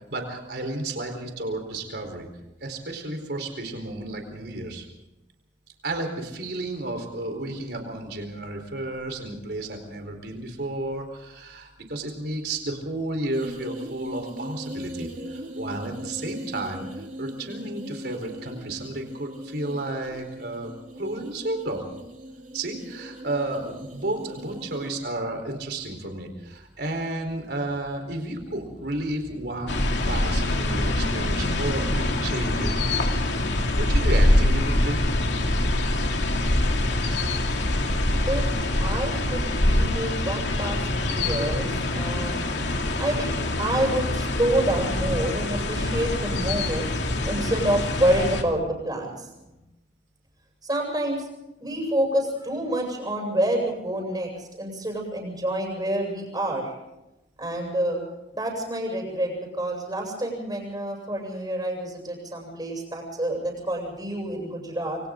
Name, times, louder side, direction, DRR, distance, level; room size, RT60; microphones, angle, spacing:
voice 1, 0.1-2.3 2.6-4.8 5.8-21.8 22.5-29.8 30.1-32.7 33.8-35.0, right 2 dB, 65° right, 4 dB, 4.3 m, -32 dB
sound 1, 13.3-24.9, equal, 45° right, 3.4 m, -39 dB
sound 2, 26.5-33.0, equal, 5° right, 3.3 m, -39 dB
sound 3, 29.7-48.4, left 1 dB, 75° left, 2.8 m, -24 dB
voice 2, 38.8-42.5 43.0-46.9 47.2-49.3 50.6-51.3 51.6-56.7 57.4-58.0 58.3-65.0, right 1 dB, 25° right, 1 dB, 7.7 m, -28 dB
28.0 x 25.0 x 3.9 m, 0.95 s
head